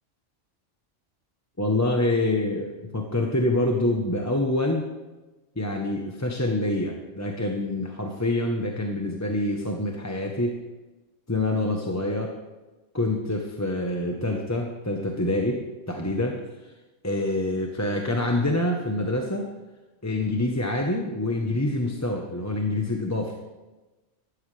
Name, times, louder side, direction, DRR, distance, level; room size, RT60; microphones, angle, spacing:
voice 1, 1.6-4.9 5.6-10.6 11.3-12.4 12.9-16.4 17.0-19.5 20.0-23.4, left 1 dB, 15° left, 1 dB, 0.9 m, -26 dB
14.5 x 12.5 x 3.3 m, 1.1 s
omnidirectional pair, 1.3 m